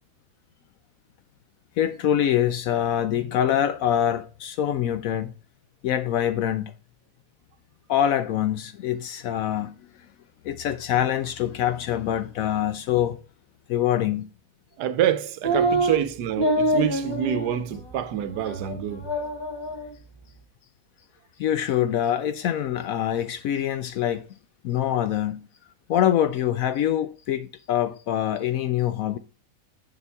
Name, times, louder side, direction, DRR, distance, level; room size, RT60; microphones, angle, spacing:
voice 1, 1.8-5.3 5.8-6.7 7.9-9.7 10.4-13.2 13.7-14.3 21.4-24.3 24.6-25.4 25.9-29.2, left 10 dB, 70° left, 0.8 m, -24 dB
voice 2, 14.8-19.1, right 10 dB, 80° right, 1.2 m, -26 dB
sound 1, 15.4-16.0 16.4-17.6 17.9-18.0 18.4-18.8 19.0-19.9, right 1 dB, 15° left, 2.1 m, -25 dB
6.9 x 6.8 x 3.4 m
omnidirectional pair, 1.8 m